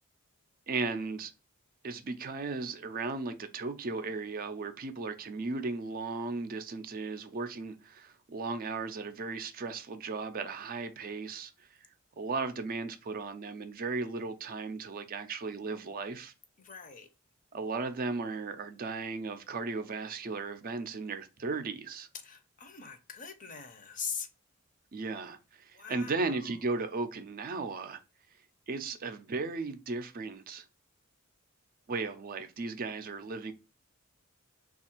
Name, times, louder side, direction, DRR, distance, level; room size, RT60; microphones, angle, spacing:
voice 1, 0.7-1.3 1.8-11.7 12.2-16.3 17.5-22.1 24.9-28.0 28.7-30.6 31.9-33.5, right 3 dB, 40° right, 0.4 m, -36 dB
voice 2, 16.6-17.1 22.1-24.3 25.7-26.5, left 6 dB, 40° left, 0.6 m, -42 dB
3.2 x 2.4 x 4.4 m
head